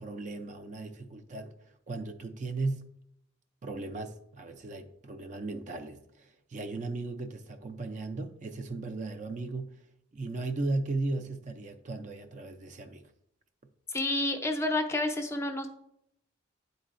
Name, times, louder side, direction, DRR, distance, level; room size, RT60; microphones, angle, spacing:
voice 1, 0.0-1.5 1.9-2.9 3.6-9.8 10.1-13.1, right 2 dB, 40° right, 0.4 m, -36 dB
voice 2, 13.9-15.7, left 2 dB, 15° left, 0.5 m, -29 dB
10.0 x 3.9 x 2.5 m
head